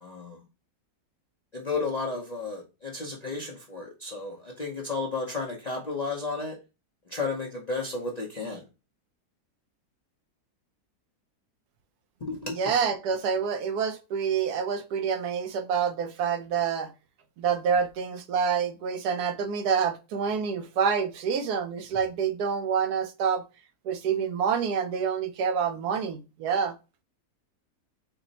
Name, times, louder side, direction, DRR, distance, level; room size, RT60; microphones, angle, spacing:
voice 1, 0.0-0.4 1.5-6.6 7.1-8.6 12.2-12.5, left 3 dB, 45° left, 0.5 m, -33 dB
voice 2, 12.5-16.9 17.4-23.4 23.8-26.8, right 6 dB, 80° right, 1.1 m, -27 dB
4.3 x 2.0 x 3.9 m
omnidirectional pair, 1.6 m